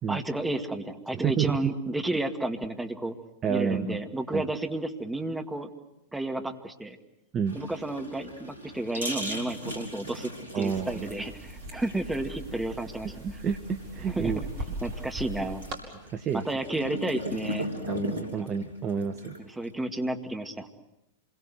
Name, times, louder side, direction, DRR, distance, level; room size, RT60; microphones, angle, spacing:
voice 1, 0.1-3.2 3.5-5.7 6.1-7.0 7.5-13.1 14.1-14.5 14.8-15.6 16.3-17.7 18.4-18.5 19.4-20.7, right 2 dB, 5° right, 4 dB, 2.2 m, -32 dB
voice 2, 1.1-1.7 3.4-4.0 4.3-4.4 7.3-7.6 10.5-11.1 13.2-14.4 16.1-16.4 17.9-19.4, right 7 dB, 30° right, 8 dB, 1.2 m, -29 dB
sound 1, 7.5-19.7, equal, 75° right, 3.3 m, -39 dB
sound 2, 10.7-15.7, right 1 dB, 45° right, 5.5 m, -39 dB
27.0 x 22.0 x 8.0 m, 0.86 s
figure-of-eight pair, 90°, 0 cm